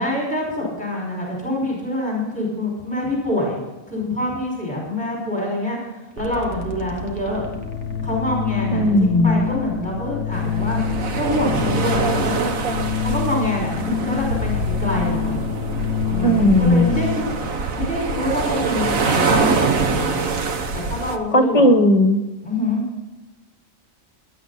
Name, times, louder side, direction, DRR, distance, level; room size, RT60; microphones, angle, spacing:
voice 1, 0.0-3.6 3.9-5.8 6.2-7.5 8.0-8.8 9.2-10.8 11.1-12.5 13.0-15.4 16.1-17.5 17.7-20.2 20.7-21.6 22.4-22.9, left 1 dB, 5° left, -3 dB, 5.3 m, -25 dB
sound 1, 6.2-14.2, right 2 dB, 65° right, 1.7 m, -37 dB
Organ, 7.2-17.5, left 9 dB, 75° left, 1.0 m, -27 dB
voice 2, 8.7-9.5 16.2-16.9 21.3-22.2, left 1 dB, 25° left, 7 dB, 1.5 m, -16 dB
sound 2, 10.3-21.2, right 4 dB, 85° right, 1.6 m, -24 dB
19.5 x 11.5 x 4.2 m, 1.1 s
omnidirectional pair, 1.4 m